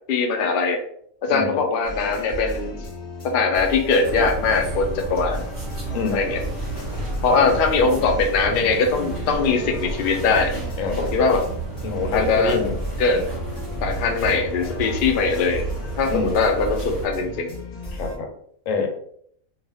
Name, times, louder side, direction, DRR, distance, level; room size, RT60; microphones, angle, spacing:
voice 1, 0.1-0.8 1.3-2.8 3.3-5.4 6.1-6.4 7.2-10.5 11.0-11.4 12.1-12.6 13.0-13.2 13.8-15.6 16.0-17.5, left 4 dB, 90° left, 4 dB, 0.4 m, -21 dB
voice 2, 1.3-1.6 5.9-6.2 7.3-7.6 10.8-11.3 11.8-12.7 16.1-16.3 17.9-18.3 18.7-18.9, left 4 dB, 70° left, 4 dB, 0.9 m, -26 dB
sound 1, 1.8-18.2, equal, 40° left, 0.7 m, -34 dB
sound 2, 4.0-17.1, right 2 dB, 20° right, 0.7 m, -32 dB
2.4 x 2.1 x 3.3 m, 0.66 s
omnidirectional pair, 1.5 m